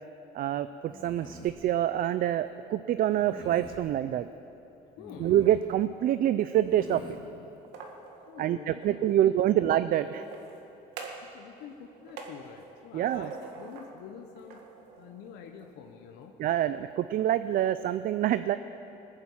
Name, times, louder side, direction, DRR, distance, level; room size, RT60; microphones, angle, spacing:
voice 1, 0.3-4.3 5.2-7.0 8.4-10.2 12.9-13.3 16.4-18.6, right 12 dB, 60° right, 12 dB, 0.5 m, -26 dB
sound 1, 0.9-1.6 3.2-3.8 5.0-5.7 6.6-7.2, left 3 dB, 25° left, 1.8 m, -46 dB
voice 2, 5.0-5.3 8.0-9.0 9.3-9.6 11.2-14.6 15.0-16.3, left 7 dB, 85° left, 3 dB, 1.0 m, -47 dB
sound 2, 7.5-9.0 10.1-11.4 11.6-14.0 14.3-15.7, right 5 dB, 85° right, 1.8 m, -45 dB
20.5 x 8.9 x 7.3 m, 3.0 s
cardioid pair, 110°, 17 cm